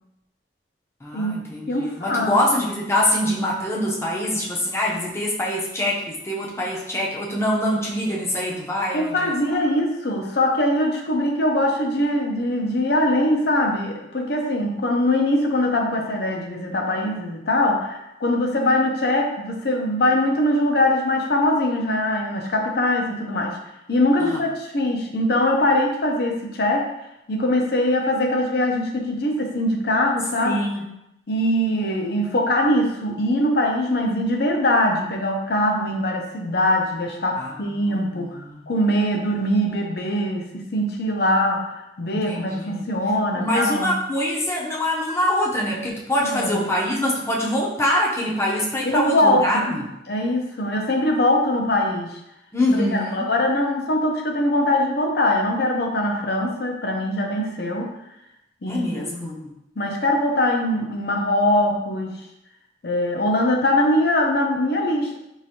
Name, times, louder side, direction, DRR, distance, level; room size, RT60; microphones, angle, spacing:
voice 1, 1.0-9.3 24.2-24.4 30.4-30.8 37.4-38.7 42.1-42.8 43.4-49.8 52.5-53.3 58.7-59.5, left 1 dB, 15° left, -3 dB, 0.6 m, -24 dB
voice 2, 1.7-2.4 8.9-23.6 23.9-26.9 27.3-30.6 31.3-38.4 38.7-44.0 46.2-46.7 48.8-52.1 52.7-57.9 58.6-59.3 59.8-62.2 62.8-65.2, left 1 dB, 60° left, 2 dB, 0.6 m, -22 dB
4.7 x 2.6 x 2.8 m, 0.85 s
head